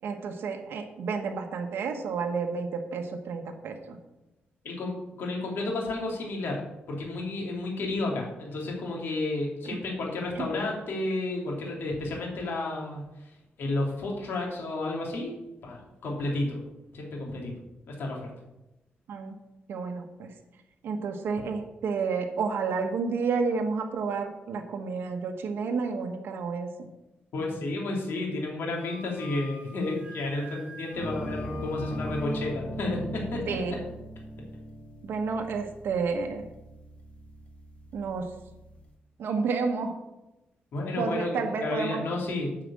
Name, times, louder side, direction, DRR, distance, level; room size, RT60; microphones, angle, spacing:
voice 1, 0.0-4.0 9.6-9.8 10.3-10.5 19.1-19.3 19.7-20.3 20.8-26.7 33.5-33.8 35.0-36.4 37.9-38.3 39.2-40.0 41.0-42.0, right 5 dB, 85° right, 4 dB, 1.2 m, -30 dB
voice 2, 5.2-6.6 6.9-13.0 13.6-16.6 16.9-17.5 17.9-18.3 27.3-33.8 40.7-42.5, left 2 dB, 75° left, -1 dB, 2.7 m, -31 dB
Wind instrument woodwind instrument, 28.8-32.5, left 1 dB, 30° right, 3.3 m, -47 dB
sound 1, 30.9-38.8, equal, 35° left, 1.8 m, -39 dB
9.0 x 5.0 x 7.5 m, 0.95 s
wide cardioid pair, 130°, 4 cm